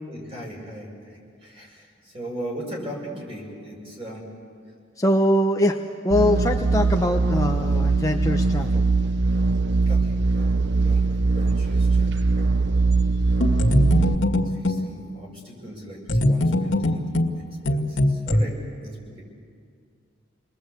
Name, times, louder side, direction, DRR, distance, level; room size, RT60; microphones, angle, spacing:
voice 1, 0.1-4.3 9.9-12.4 14.0-17.0 17.4-19.2, right 1 dB, 30° right, -2 dB, 6.4 m, -39 dB
voice 2, 5.0-5.8 6.0-8.8, left 1 dB, 15° left, 3 dB, 0.8 m, -22 dB
sound 1, 6.1-14.2, right 3 dB, 60° right, 0.6 m, -21 dB
sound 2, 13.4-14.9 16.1-18.4, left 1 dB, 75° left, 2.1 m, -22 dB
29.0 x 21.0 x 8.3 m, 2.2 s
head